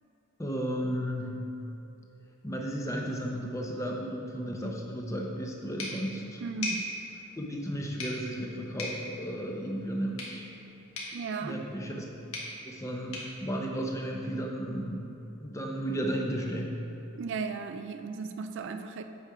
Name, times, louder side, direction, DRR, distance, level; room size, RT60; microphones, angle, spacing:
voice 1, 0.4-1.4 2.4-6.4 7.4-10.5 11.4-12.0 12.6-15.0 15.4-16.8, equal, 15° left, 0 dB, 0.7 m, -34 dB
sound 1, 5.8-14.5, left 1 dB, 75° left, 1.6 m, -42 dB
voice 2, 6.4-6.9 11.1-11.6 17.1-19.0, right 4 dB, 55° right, 8 dB, 0.3 m, -35 dB
8.2 x 5.1 x 4.9 m, 3.0 s
head